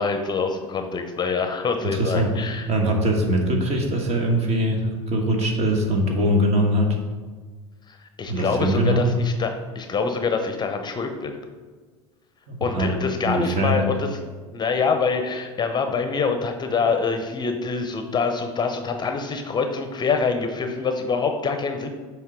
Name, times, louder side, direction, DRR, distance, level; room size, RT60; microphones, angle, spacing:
voice 1, 0.0-2.7 7.9-11.3 12.6-14.1 14.5-21.9, left 5 dB, 25° left, 6 dB, 0.7 m, -25 dB
voice 2, 1.8-2.3 2.7-7.0 8.3-9.0 12.5-12.9 13.2-13.8, equal, 40° right, 2 dB, 1.5 m, -22 dB
7.2 x 3.3 x 5.1 m, 1.4 s
hypercardioid pair, 75°, 17 cm